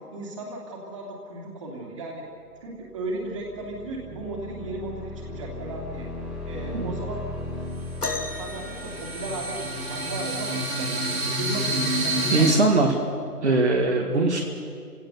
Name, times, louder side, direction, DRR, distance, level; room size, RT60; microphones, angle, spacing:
voice 1, 0.1-2.2 2.6-6.1 6.4-7.4 8.2-12.5, right 2 dB, 20° right, -1 dB, 2.8 m, -35 dB
sound 1, 2.9-10.6, left 2 dB, ahead, 2.5 m, -38 dB
sound 2, 7.1-7.2 7.6-12.5, right 1 dB, 60° right, 3.1 m, -28 dB
sound 3, 8.0-9.9 11.6-11.7 12.5-12.7 13.6-13.7, left 3 dB, 75° left, 2.6 m, -35 dB
voice 2, 12.3-12.9 13.4-14.4, right 3 dB, 45° right, 1 dB, 2.1 m, -21 dB
28.5 x 17.0 x 6.8 m, 2.4 s
figure-of-eight pair, 155°, 46 cm